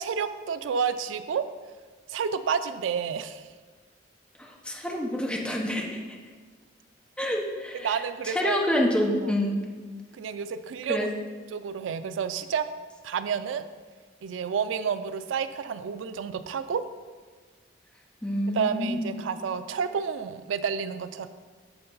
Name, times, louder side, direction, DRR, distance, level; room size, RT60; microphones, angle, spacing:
voice 1, 0.0-1.4 2.1-3.5 7.7-8.6 9.2-9.3 10.2-11.1 11.5-12.7 13.0-13.7 14.2-16.8 18.5-21.3, right 6 dB, 90° right, 11 dB, 0.4 m, -30 dB
voice 2, 4.4-5.8 7.2-9.6 10.9-11.1 18.2-19.3, left 1 dB, 5° left, -1 dB, 0.8 m, -28 dB
7.9 x 3.8 x 5.4 m, 1.5 s
head